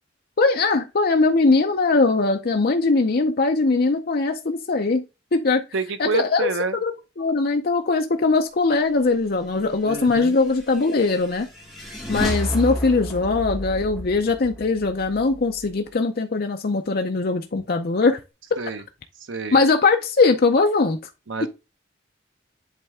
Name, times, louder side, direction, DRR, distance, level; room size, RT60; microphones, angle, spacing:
voice 1, 0.4-5.0 5.3-5.6 6.0-6.9 7.2-11.5 12.1-18.2 19.5-21.0, left 3 dB, 50° left, 0.5 m, -20 dB
voice 2, 5.7-6.8 9.8-10.4 18.6-18.8 19.2-19.6 21.3-21.5, right 4 dB, 75° right, 0.9 m, -28 dB
sound 1, 10.1-15.7, equal, ahead, 1.8 m, -31 dB
8.2 x 3.3 x 3.4 m
head